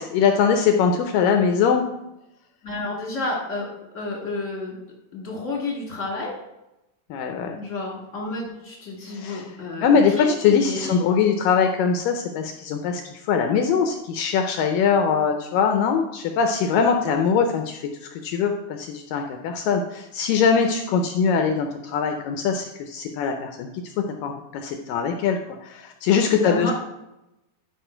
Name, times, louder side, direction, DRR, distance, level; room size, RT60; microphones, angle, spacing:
voice 1, 0.0-1.9 7.1-7.6 9.0-9.4 9.8-13.0 13.3-17.9 18.2-23.7 24.2-26.7, left 6 dB, 85° left, 4 dB, 1.9 m, -22 dB
voice 2, 2.6-3.7 3.9-4.7 5.1-6.4 7.5-11.0 26.3-26.7, left 2 dB, 40° left, -3 dB, 1.0 m, -30 dB
12.0 x 5.1 x 4.4 m, 0.90 s
omnidirectional pair, 4.7 m